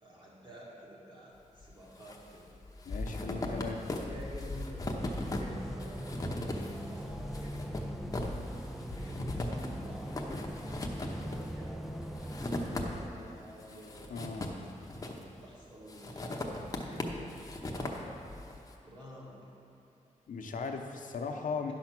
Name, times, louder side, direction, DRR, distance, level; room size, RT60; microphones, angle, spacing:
voice 1, 0.0-2.5 4.0-4.9 5.4-8.4 9.0-14.1 15.1-17.3 17.7-18.0 18.8-19.4, equal, 35° right, -5 dB, 2.0 m, -50 dB
sound 1, 1.6-2.2 2.5-13.2 13.6-15.4 15.9-18.6, left 1 dB, 25° left, 0.8 m, -38 dB
voice 2, 2.8-3.8 14.1-14.5 20.3-21.7, left 5 dB, 85° left, 3 dB, 0.8 m, -37 dB
sound 2, 5.0-13.1, equal, ahead, 0.3 m, -41 dB
10.5 x 5.8 x 6.0 m, 2.7 s
wide cardioid pair, 165°, 13 cm